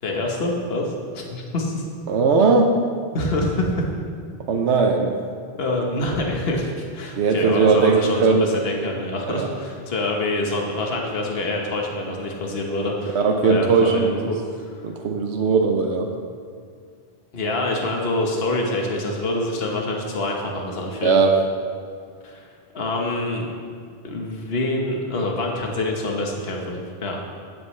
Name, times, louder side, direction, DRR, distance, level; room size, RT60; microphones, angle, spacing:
voice 1, 0.0-1.8 3.1-3.8 5.6-14.8 17.3-21.2 22.2-23.4 24.0-27.4, left 2 dB, 65° left, 0 dB, 1.4 m, -26 dB
voice 2, 2.1-2.7 4.5-5.2 7.2-8.4 9.3-9.5 13.1-14.1 14.8-16.1 21.0-21.4, right 4 dB, 85° right, 3 dB, 1.1 m, -18 dB
15.5 x 9.2 x 3.2 m, 2.1 s
omnidirectional pair, 1.1 m